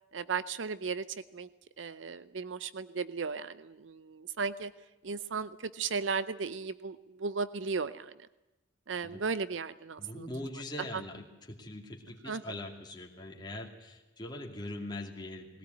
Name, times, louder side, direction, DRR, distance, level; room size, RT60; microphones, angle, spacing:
voice 1, 0.1-1.0 1.3-1.5 1.8-4.7 5.0-8.3 8.9-10.3 10.9-11.0 12.2-12.6, right 5 dB, 75° right, 15 dB, 0.7 m, -35 dB
voice 2, 10.0-15.6, left 1 dB, 25° left, 1 dB, 2.7 m, -42 dB
20.0 x 17.5 x 9.3 m, 1.1 s
head